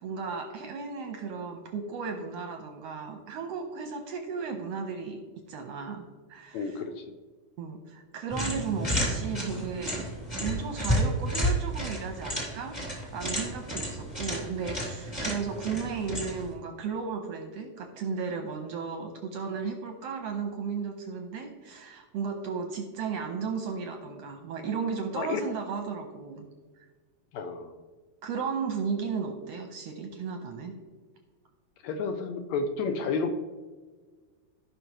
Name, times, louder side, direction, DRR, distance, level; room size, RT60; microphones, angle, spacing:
voice 1, 0.0-5.2 5.5-6.8 7.6-10.0 10.4-26.5 26.8-26.9 28.2-30.7, right 5 dB, 70° right, 5 dB, 1.6 m, -35 dB
voice 2, 6.5-7.2 25.2-25.4 27.3-27.7 31.8-33.4, left 4 dB, 80° left, 7 dB, 1.7 m, -31 dB
sound 1, 8.3-16.5, equal, 10° left, 2.2 m, -31 dB
16.0 x 5.5 x 3.0 m, 1.4 s
omnidirectional pair, 3.5 m